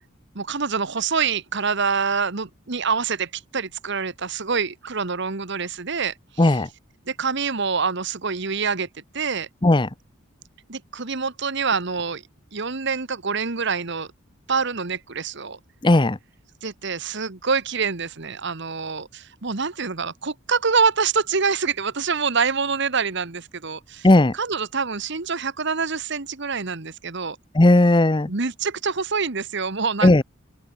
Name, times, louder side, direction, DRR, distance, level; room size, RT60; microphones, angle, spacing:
voice 1, 0.3-6.6 7.1-8.9 9.1-9.5 10.7-12.2 12.5-14.1 14.5-15.6 16.6-24.1 24.3-27.4 28.3-30.2, right 5 dB, 60° right, 1.4 m, -26 dB
voice 2, 15.8-16.2 24.0-24.3 27.5-28.3 30.0-30.2, left 1 dB, 25° left, 0.8 m, -15 dB
open air
head